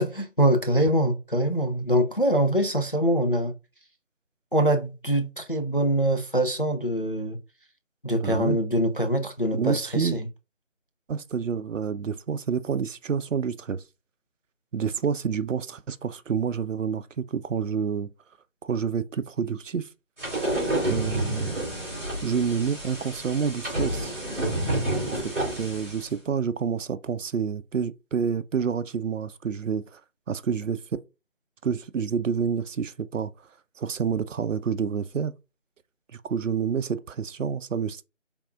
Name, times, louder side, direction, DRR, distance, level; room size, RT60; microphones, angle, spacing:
voice 1, 0.0-3.5 4.5-7.4 8.0-10.3, right 1 dB, 45° left, 0.4 m, -24 dB
voice 2, 8.1-8.6 9.5-10.2 11.1-13.8 14.7-18.1 18.6-19.9 20.9-21.5 22.2-24.2 25.1-30.0 30.3-30.8 31.6-33.3 33.8-35.3 36.1-38.0, right 6 dB, 75° right, 0.5 m, -28 dB
sound 1, 20.2-26.1, right 1 dB, 10° right, 2.4 m, -29 dB
4.6 x 3.4 x 2.5 m
figure-of-eight pair, 170°, 38 cm